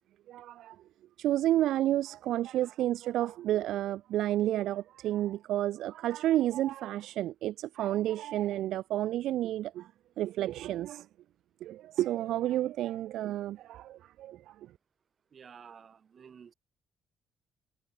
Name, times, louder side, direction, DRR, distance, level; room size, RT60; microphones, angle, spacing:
voice 1, 0.3-0.8 1.2-9.9 10.2-11.1 11.6-14.6, right 13 dB, 85° right, 0.4 m, -30 dB
voice 2, 15.3-16.5, right 7 dB, 50° right, 2.1 m, -52 dB
cardioid pair, 90°, 0 cm